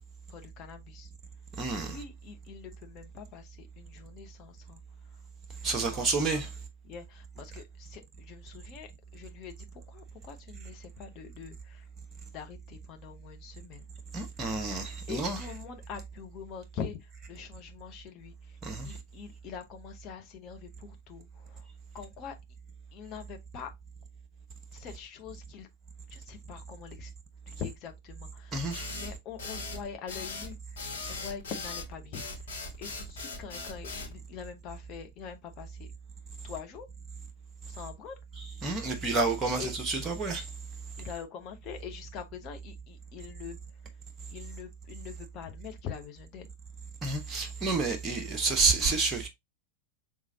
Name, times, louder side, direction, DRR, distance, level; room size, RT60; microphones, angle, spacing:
voice 1, 0.3-1.1 1.7-5.2 5.8-6.4 6.8-11.9 12.3-13.9 15.1-18.6 18.8-21.7 21.9-22.4 22.9-23.7 24.7-25.7 26.1-27.1 27.5-32.5 32.8-35.9 36.4-36.9 37.7-38.2 39.6-39.7 41.0-43.6 44.3-46.5, left 7 dB, 35° left, 0.9 m, -44 dB
voice 2, 1.6-2.0 5.6-6.5 14.1-15.4 18.6-18.9 28.5-28.9 38.4-40.4 47.0-49.3, right 3 dB, 20° right, 1.0 m, -29 dB
sound 1, 28.7-34.1, left 4 dB, 60° left, 2.0 m, -39 dB
5.0 x 3.6 x 2.7 m
figure-of-eight pair, 90°, 0 cm